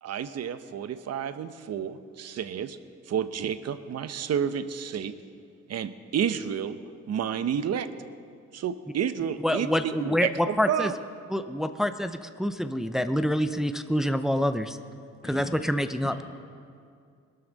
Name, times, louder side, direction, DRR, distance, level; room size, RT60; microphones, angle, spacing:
voice 1, 0.0-2.8 3.1-5.1 5.7-6.8 7.1-7.9 8.5-10.9, right 8 dB, 55° right, 12 dB, 0.8 m, -30 dB
voice 2, 9.4-10.9 11.3-14.8 15.2-16.2, equal, ahead, 9 dB, 0.6 m, -26 dB
voice 3, 15.2-15.8 16.0-16.3, left 2 dB, 25° left, -5 dB, 2.2 m, -42 dB
21.0 x 12.5 x 4.0 m, 2.3 s
cardioid pair, 90°, 30 cm